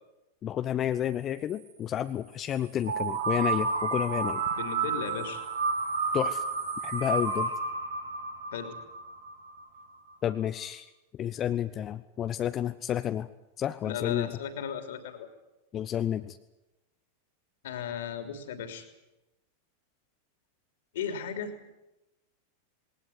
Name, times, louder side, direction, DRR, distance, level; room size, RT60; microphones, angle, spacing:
voice 1, 0.4-4.4 6.1-6.4 6.8-7.5 10.2-10.9 11.2-13.3 13.6-14.3 15.7-16.4, left 10 dB, 30° left, 10 dB, 0.8 m, -30 dB
sound 1, 2.8-9.6, right 4 dB, 70° right, 3.7 m, -31 dB
voice 2, 4.6-5.4 8.5-8.8 13.8-15.3 17.6-18.8 20.9-21.6, left 7 dB, 60° left, 7 dB, 3.2 m, -36 dB
20.0 x 19.0 x 9.8 m, 0.98 s
figure-of-eight pair, 90°, 0 cm